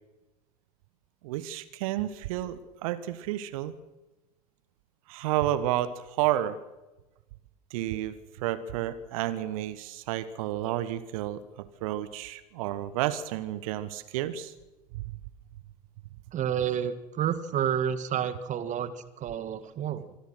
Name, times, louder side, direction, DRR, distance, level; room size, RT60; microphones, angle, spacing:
voice 1, 1.2-3.7 5.1-6.6 7.7-14.5 14.9-15.2, right 13 dB, 60° right, 15 dB, 1.4 m, -31 dB
voice 2, 16.3-20.2, right 9 dB, 40° right, 13 dB, 1.8 m, -30 dB
26.0 x 20.0 x 6.3 m, 1.1 s
figure-of-eight pair, 70°, 20 cm